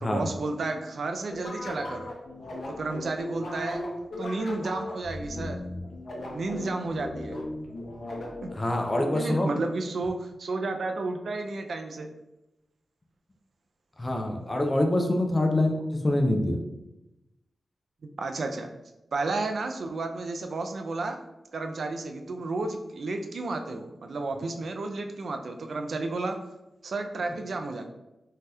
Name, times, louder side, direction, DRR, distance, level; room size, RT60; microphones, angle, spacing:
voice 1, 0.0-2.1 2.8-3.8 4.2-5.6 6.3-7.4 9.1-12.1 18.0-18.7 19.1-21.2 21.5-26.4 26.8-27.9, right 3 dB, 65° right, 5 dB, 0.3 m, -32 dB
sound 1, 1.3-9.4, left 1 dB, 65° left, 0.6 m, -37 dB
voice 2, 8.5-9.5 14.0-16.6, left 1 dB, 25° left, 3 dB, 0.3 m, -25 dB
2.7 x 2.3 x 3.3 m, 0.95 s
wide cardioid pair, 130°, 0 cm